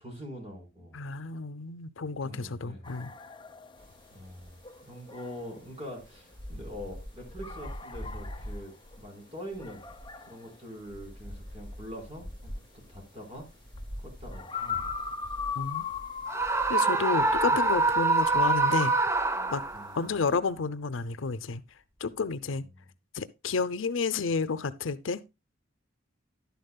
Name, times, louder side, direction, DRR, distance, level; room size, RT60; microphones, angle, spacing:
voice 1, 0.0-0.9 2.2-2.8 4.1-4.6 4.9-9.9 10.2-12.6 12.9-13.5 14.0-14.9 19.7-20.1 22.5-22.8, equal, 30° right, 4.5 m, -44 dB
voice 2, 0.9-3.1 15.6-15.9 16.7-18.9 19.5-19.6 19.9-21.6 22.0-22.6 23.1-25.2, left 4 dB, 70° left, 0.7 m, -31 dB
sound 1, 2.8-17.8 18.2-19.0, left 6 dB, 25° left, 0.8 m, -40 dB
sound 2, 3.8-20.4, equal, 55° right, 4.8 m, -46 dB
Screaming, 16.3-20.0, right 3 dB, 15° right, 0.5 m, -25 dB
12.0 x 10.5 x 2.3 m
head